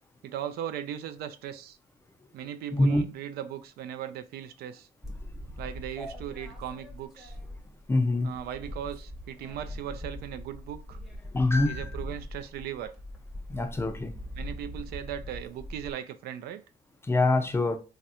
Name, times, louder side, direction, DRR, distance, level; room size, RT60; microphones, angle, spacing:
voice 1, 0.2-1.8 2.3-4.9 5.6-7.4 8.2-11.0 11.6-12.9 14.4-16.6, right 10 dB, 70° right, 0.4 m, -38 dB
voice 2, 2.7-3.0 6.0-6.1 7.9-8.3 11.3-11.8 13.5-14.1 17.1-17.8, left 2 dB, 15° left, 0.4 m, -24 dB
sound 1, 5.0-7.9 8.2-15.9, left 1 dB, ahead, 0.8 m, -41 dB
3.1 x 2.4 x 2.8 m
cardioid pair, 110°, 17 cm